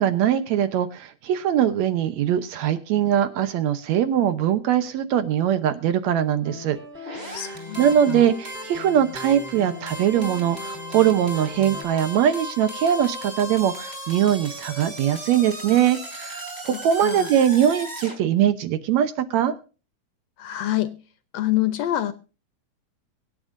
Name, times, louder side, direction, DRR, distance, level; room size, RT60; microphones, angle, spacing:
voice 1, 0.0-6.8 7.1-19.5, right 10 dB, 70° right, 11 dB, 2.0 m, -22 dB
sound 1, 6.4-11.8, left 3 dB, 5° left, 3.5 m, -40 dB
sound 2, 7.0-18.2, equal, 10° right, 4.0 m, -37 dB
voice 2, 7.3-7.8 8.1-8.3 16.7-17.3 20.4-21.0 21.3-22.1, left 14 dB, 70° left, 12 dB, 1.8 m, -26 dB
24.0 x 8.9 x 2.6 m, 0.34 s
omnidirectional pair, 3.6 m